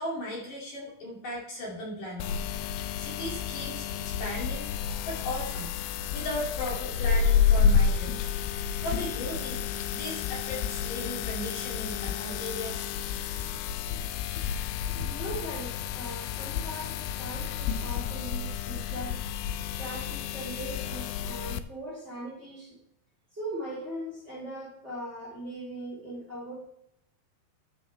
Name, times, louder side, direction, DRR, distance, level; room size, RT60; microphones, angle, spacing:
voice 1, 0.0-2.4 3.0-4.7 5.1-5.8 6.1-8.3 8.8-12.9, left 1 dB, 55° left, -4 dB, 3.9 m, -37 dB
sound 1, 2.2-21.6, left 7 dB, 80° left, 2.3 m, -30 dB
voice 2, 15.0-19.3 19.8-22.8 23.3-26.6, right 1 dB, 15° right, -4 dB, 3.5 m, -40 dB
11.5 x 7.7 x 3.3 m, 0.78 s
omnidirectional pair, 4.7 m